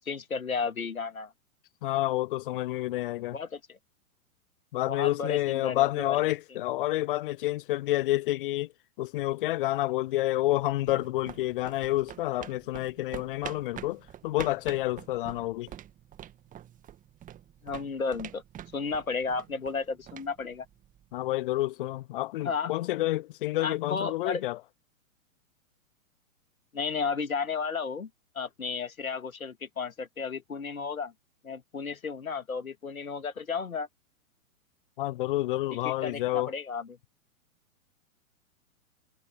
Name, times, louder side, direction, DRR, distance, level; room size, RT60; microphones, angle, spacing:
voice 1, 0.1-1.3 3.3-3.8 4.9-6.2 17.6-18.4 18.7-20.7 22.4-22.7 23.6-24.4 26.7-28.1 28.3-31.1 31.4-33.9 35.8-37.0, left 5 dB, 75° left, 2.8 m, -33 dB
voice 2, 1.8-3.4 4.7-8.7 9.0-15.7 21.1-24.6 35.0-36.5, left 16 dB, 40° left, 0.7 m, -29 dB
sound 1, 10.4-21.2, right 11 dB, 20° right, 2.0 m, -47 dB
figure-of-eight pair, 110°, 42 cm